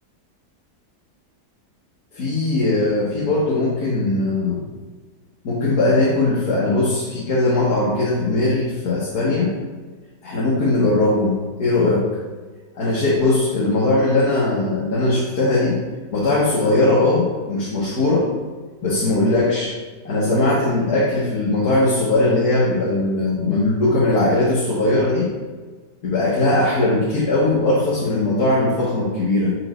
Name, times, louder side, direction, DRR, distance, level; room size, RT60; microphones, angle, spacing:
voice 1, 2.1-4.7 5.4-9.5 10.2-12.1 12.8-15.8 16.1-18.3 18.8-19.8 20.0-25.3 26.0-29.6, left 2 dB, 65° left, -7 dB, 2.2 m, -19 dB
9.9 x 7.4 x 2.6 m, 1.4 s
omnidirectional pair, 1.8 m